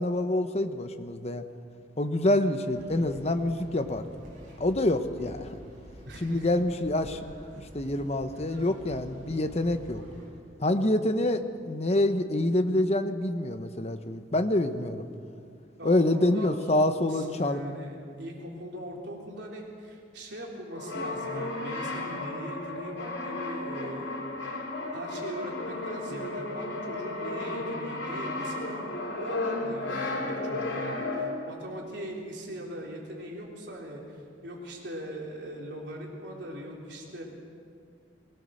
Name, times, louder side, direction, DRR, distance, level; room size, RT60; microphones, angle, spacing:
voice 1, 0.0-1.4 2.0-4.1 4.6-5.6 6.2-7.2 7.7-10.0 10.6-15.0 15.8-17.6, left 1 dB, 35° left, 8 dB, 1.0 m, -26 dB
sound 1, 2.7-10.3, equal, 45° right, 7.0 m, -48 dB
voice 2, 6.1-6.6 15.8-24.2 24.9-28.8 29.2-37.2, equal, 70° right, -2 dB, 3.7 m, -40 dB
Brass instrument, 20.7-31.5, left 2 dB, 90° left, 3.4 m, -34 dB
21.0 x 19.0 x 6.5 m, 2.3 s
head